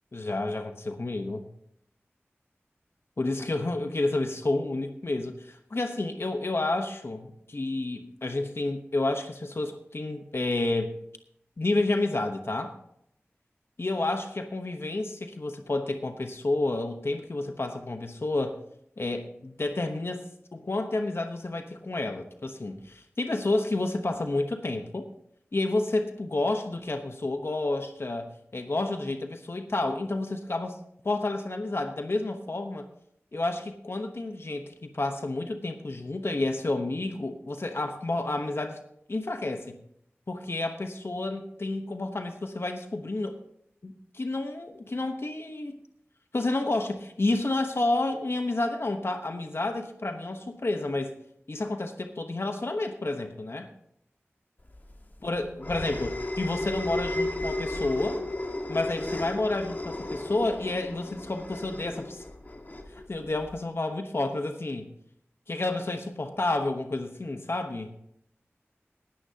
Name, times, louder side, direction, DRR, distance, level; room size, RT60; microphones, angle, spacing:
voice 1, 0.1-1.5 3.2-11.0 11.6-12.7 13.8-18.6 19.0-25.1 25.5-30.8 31.0-32.9 33.3-38.8 39.1-39.8 40.3-43.4 43.8-45.8 46.3-51.1 51.5-53.7 55.2-58.2 58.7-62.2 62.9-64.9 65.5-67.9, left 2 dB, 60° left, 6 dB, 1.0 m, -30 dB
sound 1, 54.7-63.6, left 1 dB, 40° left, 1.5 m, -34 dB
19.0 x 10.0 x 2.8 m, 0.72 s
wide cardioid pair, 65°, 5 cm